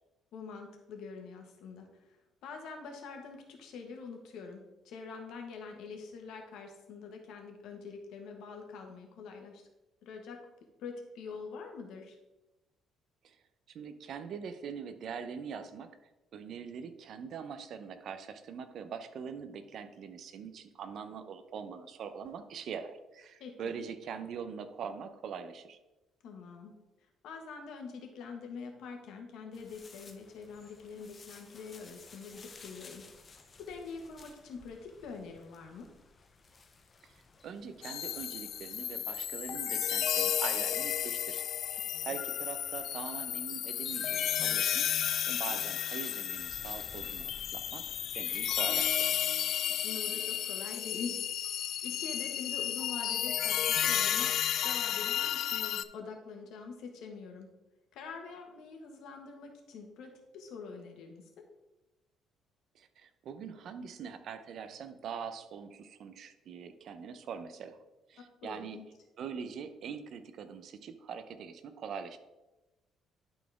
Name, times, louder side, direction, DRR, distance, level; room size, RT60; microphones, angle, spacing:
voice 1, 0.3-2.2 2.4-9.6 10.0-10.4 10.8-12.2 23.4-23.7 26.2-26.7 27.2-35.9 41.9-42.1 45.3-45.6 49.7-51.2 51.8-57.5 57.9-61.4 68.2-68.9, left 5 dB, 70° left, 3 dB, 1.4 m, -45 dB
voice 2, 13.7-15.9 16.3-25.8 37.4-41.4 42.0-44.9 45.3-47.9 48.1-49.3 62.7-67.8 68.1-68.8 69.2-72.2, right 6 dB, 50° right, 10 dB, 0.6 m, -43 dB
sound 1, 29.5-48.9, left 4 dB, 25° left, 0.7 m, -55 dB
sound 2, 37.8-55.8, left 10 dB, 55° left, 0.3 m, -32 dB
11.5 x 4.2 x 3.5 m, 1.0 s
cardioid pair, 160°, 0 cm